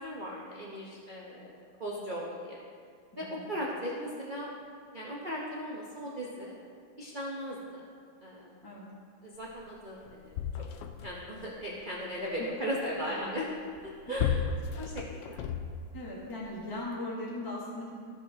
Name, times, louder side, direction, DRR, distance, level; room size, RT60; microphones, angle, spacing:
voice 1, 0.0-2.6 3.2-4.5 4.9-6.5 7.0-7.8 8.2-8.6 9.2-10.3 11.0-13.5 13.8-14.4 14.8-15.5, equal, 40° right, -5 dB, 0.6 m, -37 dB
voice 2, 3.1-3.5 8.6-8.9 13.0-13.3 14.0-14.2 15.9-17.9, left 1 dB, 15° left, -5 dB, 0.9 m, -39 dB
sound 1, 9.7-9.8 10.0-11.4 13.7-16.1 16.8-16.9, left 7 dB, 85° left, 1.5 m, -34 dB
15.0 x 5.6 x 2.9 m, 2.1 s
omnidirectional pair, 2.4 m